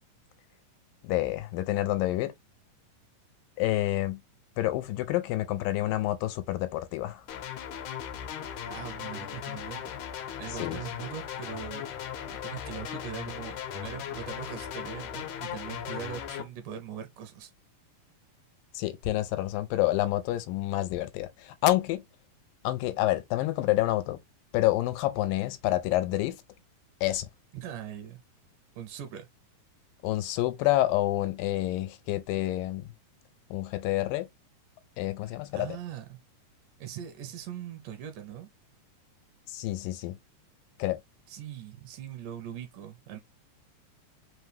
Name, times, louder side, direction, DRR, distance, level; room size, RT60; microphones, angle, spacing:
voice 1, 1.0-2.3 3.6-4.2 4.6-7.3 10.6-10.8 18.7-22.0 22.6-24.2 24.5-26.4 27.0-27.3 30.0-32.9 33.5-34.3 35.0-35.7 39.5-40.2 40.8-41.0, left 16 dB, 90° left, 2.3 m, -28 dB
sound 1, 7.3-16.4, left 9 dB, 75° left, 2.1 m, -38 dB
voice 2, 8.7-9.9 10.4-17.5 27.5-28.2 28.8-29.3 35.5-36.2 36.8-38.5 41.3-43.2, right 9 dB, 80° right, 2.0 m, -41 dB
5.6 x 2.2 x 3.3 m
omnidirectional pair, 3.9 m